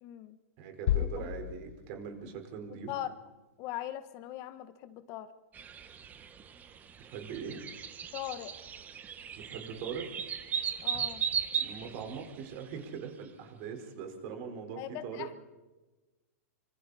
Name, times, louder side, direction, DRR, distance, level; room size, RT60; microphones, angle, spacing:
voice 1, 0.0-0.4 0.9-1.1 2.9-3.1 3.6-5.3 8.1-8.5 10.8-11.2 14.8-15.4, left 13 dB, 40° left, 11 dB, 1.3 m, -40 dB
voice 2, 0.6-2.9 7.0-7.6 9.4-10.1 11.6-15.3, right 6 dB, 45° right, 5 dB, 4.6 m, -41 dB
sound 1, 0.9-2.7, left 13 dB, 65° left, 0.6 m, -33 dB
sound 2, 5.5-12.8, right 7 dB, 20° right, 1.4 m, -37 dB
26.5 x 25.0 x 4.2 m, 1.2 s
hypercardioid pair, 140°, 8 cm